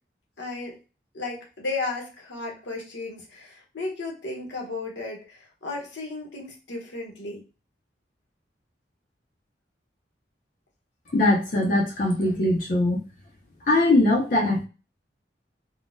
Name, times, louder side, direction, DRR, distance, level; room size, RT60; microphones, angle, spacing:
voice 1, 0.4-0.7 1.1-7.4, left 3 dB, 80° left, 0 dB, 1.0 m, -34 dB
voice 2, 11.1-13.0 13.7-14.6, left 2 dB, 45° left, -2 dB, 0.5 m, -21 dB
3.6 x 2.1 x 2.5 m, 0.32 s
head